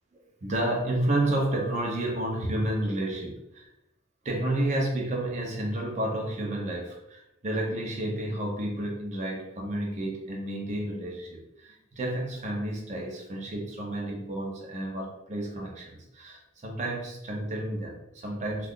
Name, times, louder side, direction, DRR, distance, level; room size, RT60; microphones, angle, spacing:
voice 1, 0.4-3.7 4.2-18.7, right 1 dB, 40° right, 0 dB, 0.6 m, -31 dB
2.4 x 2.3 x 3.5 m, 0.86 s
head